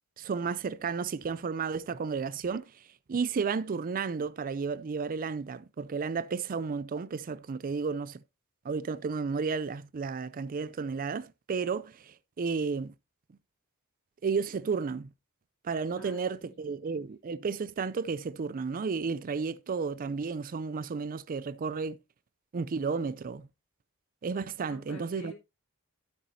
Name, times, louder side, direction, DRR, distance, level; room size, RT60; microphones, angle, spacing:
voice 1, 0.2-2.7 3.1-8.2 8.6-12.9 14.2-15.1 15.6-22.0 22.5-23.5 24.2-25.3, right 5 dB, 40° right, 0.4 m, -32 dB
voice 2, 16.0-17.0 24.6-25.3, equal, 75° left, 4.0 m, -48 dB
12.0 x 8.1 x 2.7 m
head